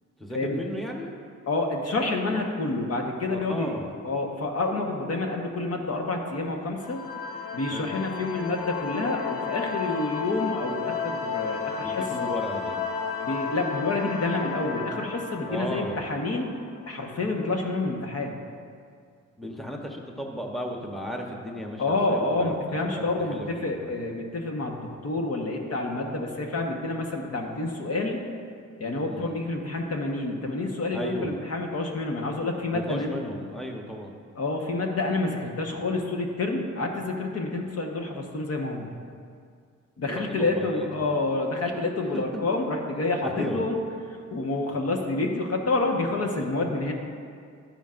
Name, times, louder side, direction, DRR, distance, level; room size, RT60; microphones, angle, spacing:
voice 1, 0.2-1.1 3.5-3.9 7.7-7.9 11.8-12.8 15.4-16.1 19.4-22.5 23.0-23.9 29.0-29.3 30.9-31.4 32.7-34.1 40.1-41.1 43.2-43.6, equal, ahead, 0 dB, 1.0 m, -35 dB
voice 2, 1.5-3.7 4.0-7.0 7.5-12.3 13.2-16.5 16.9-18.3 21.8-28.2 28.8-33.1 34.3-38.9 40.0-43.8 44.3-46.9, left 2 dB, 55° left, 1 dB, 1.3 m, -28 dB
sound 1, 6.8-17.2, left 6 dB, 80° left, 0.9 m, -33 dB
12.0 x 10.0 x 2.6 m, 2.2 s
cardioid pair, 90°, 30 cm